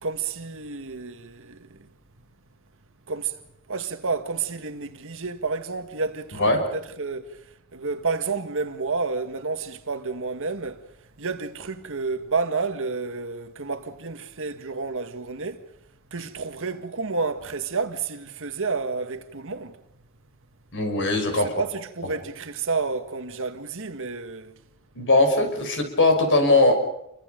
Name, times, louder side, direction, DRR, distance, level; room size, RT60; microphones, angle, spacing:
voice 1, 0.0-1.9 3.1-3.4 3.7-10.8 11.2-15.6 16.1-19.8 21.6-24.5, right 4 dB, 60° right, 1.8 m, -30 dB
voice 2, 20.7-21.5 24.9-26.8, left 2 dB, 60° left, 5.9 m, -20 dB
29.5 x 24.5 x 5.3 m
head